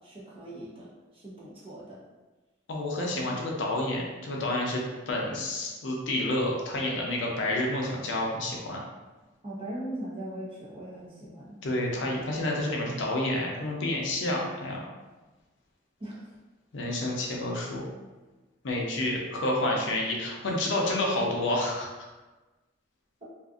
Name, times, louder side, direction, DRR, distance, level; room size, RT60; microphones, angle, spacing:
voice 1, 0.0-2.0 9.4-11.6 16.0-16.2, right 1 dB, 30° right, -7 dB, 0.7 m, -40 dB
voice 2, 2.7-8.8 11.6-14.9 16.7-17.9 18.6-22.1, left 1 dB, 70° left, -2 dB, 0.5 m, -29 dB
2.5 x 2.4 x 2.4 m, 1.2 s
head